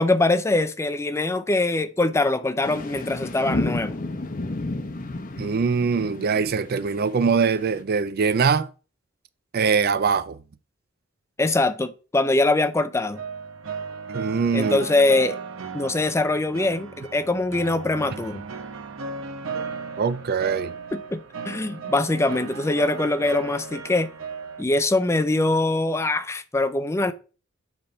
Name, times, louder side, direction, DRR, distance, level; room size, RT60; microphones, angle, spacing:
voice 1, 0.0-4.0 11.4-13.2 14.5-15.4 15.7-18.4 20.9-24.1 24.6-27.1, left 2 dB, 15° left, 0.4 m, -23 dB
sound 1, 2.6-7.8, left 2 dB, 40° left, 0.8 m, -31 dB
voice 2, 5.4-8.7 9.5-10.4 14.1-14.9 20.0-20.7, right 5 dB, 50° right, 0.4 m, -22 dB
sound 2, 13.1-24.6, right 5 dB, 65° right, 0.9 m, -35 dB
7.9 x 3.5 x 5.3 m
head